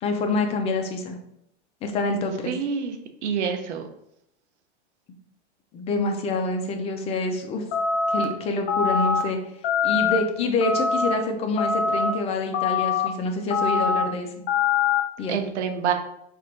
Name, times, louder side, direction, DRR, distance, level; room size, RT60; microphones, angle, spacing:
voice 1, 0.0-1.2 1.8-2.5 5.7-7.6 8.1-9.4 9.8-14.3 15.2-15.4, left 2 dB, 20° left, 4 dB, 0.4 m, -26 dB
voice 2, 2.5-3.0 3.2-3.9 15.3-15.9, right 7 dB, 90° right, 6 dB, 0.7 m, -26 dB
sound 1, 7.7-8.3 8.7-9.2 9.6-10.2 10.6-11.1 11.6-12.1 12.5-13.1 13.5-14.0 14.5-15.0, left 6 dB, 50° left, 0.7 m, -23 dB
3.4 x 2.5 x 4.4 m, 0.78 s
supercardioid pair, 135°, 33 cm